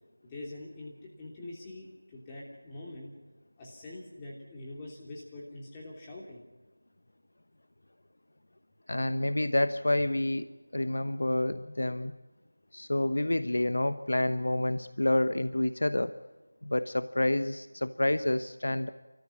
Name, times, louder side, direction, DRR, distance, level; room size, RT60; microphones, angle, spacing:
voice 1, 0.2-3.1 3.6-6.4, left 2 dB, 15° left, -3 dB, 3.1 m, -44 dB
voice 2, 8.9-12.1 12.7-16.1 16.6-18.9, left 1 dB, 65° left, 12 dB, 1.0 m, -28 dB
29.5 x 14.5 x 9.8 m, 1.1 s
figure-of-eight pair, 170°, 0 cm